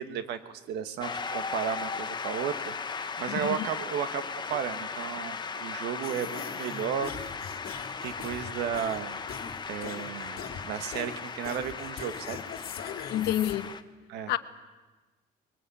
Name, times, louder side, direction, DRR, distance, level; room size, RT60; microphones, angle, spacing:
voice 1, 0.0-7.1 8.0-9.2 9.7-12.4 14.1-14.3, right 8 dB, 80° right, 1.5 m, -34 dB
Shout / Cheering / Applause, 1.0-13.8, left 5 dB, 25° left, 1.1 m, -37 dB
voice 2, 3.3-3.6 13.1-13.7 14.3-14.4, left 13 dB, 80° left, 1.2 m, -28 dB
sound 1, 6.0-13.6, left 7 dB, 65° left, 2.2 m, -42 dB
21.5 x 20.0 x 8.5 m
cardioid pair, 110°, 17 cm